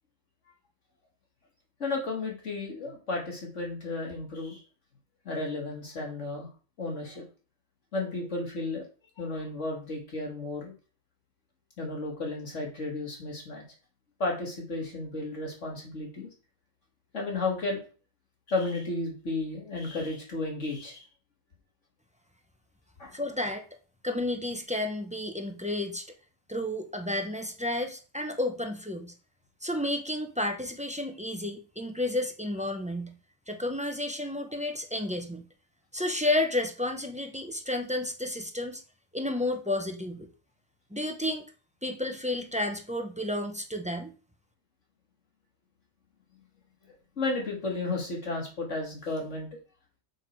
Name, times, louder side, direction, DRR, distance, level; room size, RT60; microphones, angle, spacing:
voice 1, 1.8-4.6 5.2-6.5 6.8-7.2 7.9-8.9 9.2-10.7 11.8-13.6 14.2-16.3 17.1-17.8 18.5-21.1 23.0-23.2 46.8-49.6, left 2 dB, 65° left, 0 dB, 2.6 m, -33 dB
voice 2, 23.1-23.6 24.0-26.0 26.5-29.1 29.6-33.2 33.5-35.4 35.9-38.8 39.1-40.3 40.9-41.4 41.8-44.1, left 1 dB, 5° right, 5 dB, 0.7 m, -31 dB
6.6 x 6.0 x 4.6 m, 0.36 s
omnidirectional pair, 1.4 m